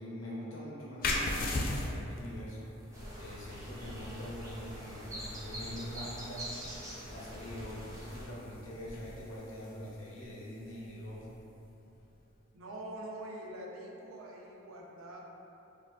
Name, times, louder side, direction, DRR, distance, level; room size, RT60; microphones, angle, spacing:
voice 1, 0.0-6.6 7.1-11.4, equal, 65° left, -6 dB, 0.8 m, -44 dB
sound 1, 1.0-12.3, left 2 dB, 45° left, 0.3 m, -40 dB
sound 2, 2.9-8.2, equal, 15° right, 0.5 m, -44 dB
voice 2, 12.5-15.2, right 1 dB, 80° right, -2 dB, 0.5 m, -44 dB
4.3 x 2.6 x 2.3 m, 3.0 s
head